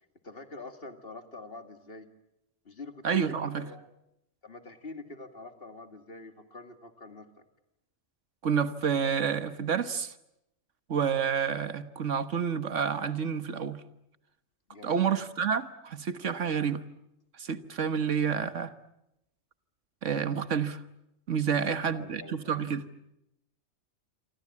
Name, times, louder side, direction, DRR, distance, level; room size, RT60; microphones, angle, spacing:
voice 1, 0.2-2.1 2.6-3.9 4.4-7.3 14.7-15.0 21.7-22.6, left 3 dB, 50° left, 7 dB, 2.5 m, -45 dB
voice 2, 3.0-3.6 8.4-10.1 10.9-13.8 14.8-16.9 17.4-18.7 20.0-20.8 21.3-22.9, right 7 dB, 75° right, 11 dB, 1.7 m, -29 dB
27.5 x 25.5 x 8.5 m, 0.84 s
omnidirectional pair, 1.3 m